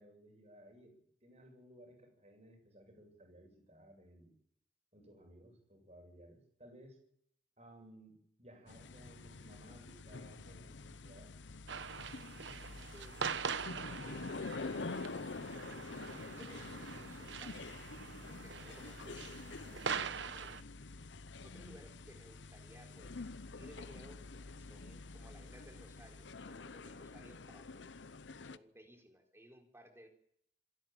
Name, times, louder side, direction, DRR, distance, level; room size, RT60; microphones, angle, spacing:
voice 1, 0.0-4.3 4.9-7.0 7.6-11.3, right 1 dB, 35° right, 4 dB, 7.3 m, -59 dB
sound 1, 8.7-28.6, left 3 dB, 85° left, 0.8 m, -47 dB
sound 2, 11.7-20.6, right 6 dB, 85° right, 1.0 m, -43 dB
voice 2, 12.9-13.5 13.9-17.7 18.3-20.5 21.4-27.9 28.4-30.1, equal, 15° right, 4 dB, 4.2 m, -59 dB
27.0 x 12.0 x 9.0 m, 0.70 s
head